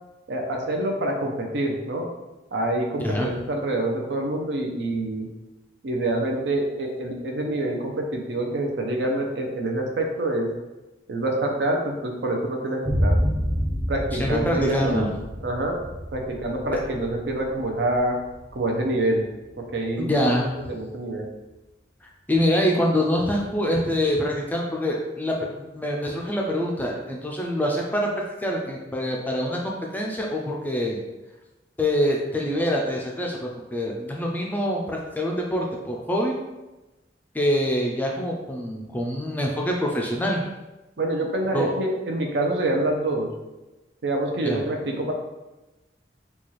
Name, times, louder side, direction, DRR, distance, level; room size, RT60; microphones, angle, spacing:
voice 1, 0.3-2.1 2.5-5.3 5.8-10.5 11.1-13.2 13.9-15.1 15.4-15.7 16.1-18.2 18.5-19.3 19.7-20.3 20.7-21.3 41.0-43.3 44.0-45.1, right 1 dB, 70° right, 2 dB, 0.6 m, -26 dB
sound 1, 12.8-20.2, equal, 25° right, 0.7 m, -29 dB
voice 2, 14.2-15.1 20.0-20.5 22.0-28.1 28.4-31.0 31.8-36.4 37.3-40.5 41.5-41.7 44.4-44.6, equal, 10° left, -1 dB, 0.3 m, -25 dB
4.1 x 2.3 x 3.1 m, 1.1 s
head